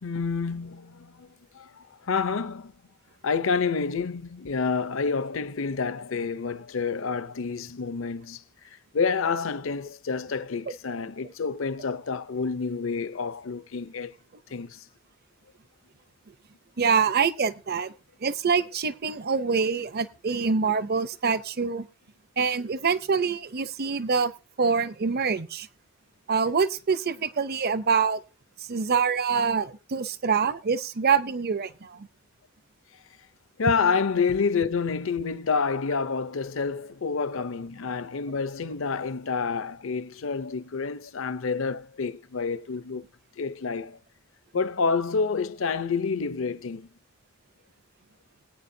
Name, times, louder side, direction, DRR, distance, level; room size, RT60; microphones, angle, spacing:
voice 1, 0.0-2.7 3.2-8.4 8.9-14.1 14.5-14.8 33.6-43.0 43.4-44.0 44.5-46.9, left 5 dB, 65° left, 0.6 m, -28 dB
voice 2, 16.8-17.9 18.2-21.9 22.4-24.3 24.6-25.7 26.3-28.2 28.7-32.1, right 5 dB, 50° right, 0.6 m, -25 dB
21.5 x 9.0 x 2.7 m
head